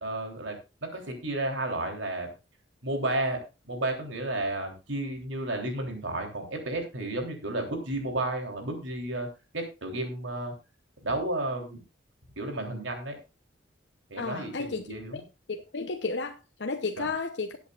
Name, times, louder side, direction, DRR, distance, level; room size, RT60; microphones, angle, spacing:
voice 1, 0.0-2.3 2.8-9.3 9.5-10.5 11.0-11.8 12.4-13.2 14.1-15.2 17.0-17.1, right 2 dB, 85° right, 3.3 m, -32 dB
voice 2, 14.2-14.9 15.5-17.7, left 4 dB, 65° left, 0.8 m, -33 dB
19.0 x 8.3 x 2.4 m
head